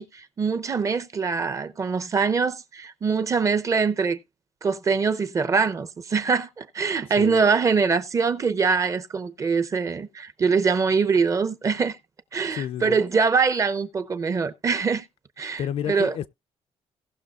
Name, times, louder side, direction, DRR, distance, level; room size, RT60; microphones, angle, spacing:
voice 1, 0.0-4.2 4.6-12.0 12.3-15.0 15.4-15.6 15.9-16.1, right 5 dB, 30° right, 0.6 m, -23 dB
voice 2, 12.5-13.0 15.6-16.3, left 9 dB, 55° left, 0.4 m, -30 dB
18.0 x 6.1 x 2.4 m
cardioid pair, 160°, 11 cm